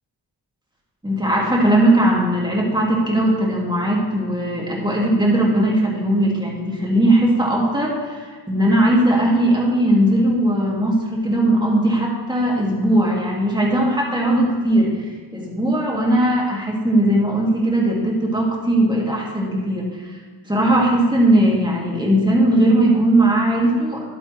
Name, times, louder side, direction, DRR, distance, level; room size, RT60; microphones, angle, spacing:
voice 1, 1.0-15.0 15.3-20.0 20.5-24.1, right 1 dB, 10° right, -3 dB, 2.0 m, -18 dB
10.5 x 9.0 x 3.2 m, 1.4 s
wide cardioid pair, 65°, 46 cm